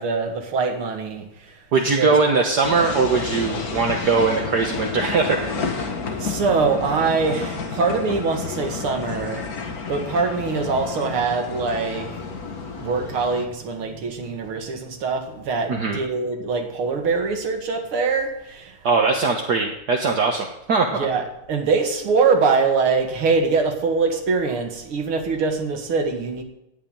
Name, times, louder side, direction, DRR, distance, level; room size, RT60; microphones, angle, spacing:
voice 1, 0.0-1.6 1.9-2.1 6.2-9.4 9.9-12.1 12.8-18.8 20.9-26.4, right 4 dB, 90° right, 4 dB, 2.7 m, -23 dB
voice 2, 1.7-5.6 15.7-16.0 18.8-21.1, right 4 dB, 55° right, 1 dB, 1.7 m, -21 dB
sound 1, 2.6-13.5, left 4 dB, 50° left, 1.8 m, -30 dB
17.5 x 6.0 x 9.0 m, 0.85 s
omnidirectional pair, 2.3 m